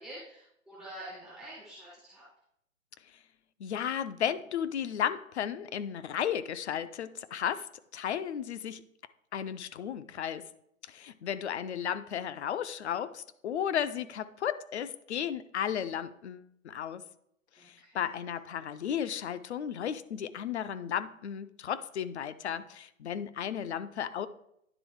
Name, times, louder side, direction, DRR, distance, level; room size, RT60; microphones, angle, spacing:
voice 1, 0.0-2.3 17.6-18.1, right 1 dB, ahead, -10 dB, 0.4 m, -47 dB
voice 2, 3.6-7.7 7.9-8.8 9.3-10.4 10.8-17.0 17.6-24.3, left 9 dB, 55° left, 14 dB, 0.5 m, -34 dB
10.0 x 3.5 x 4.6 m, 0.75 s
hypercardioid pair, 145°, 41 cm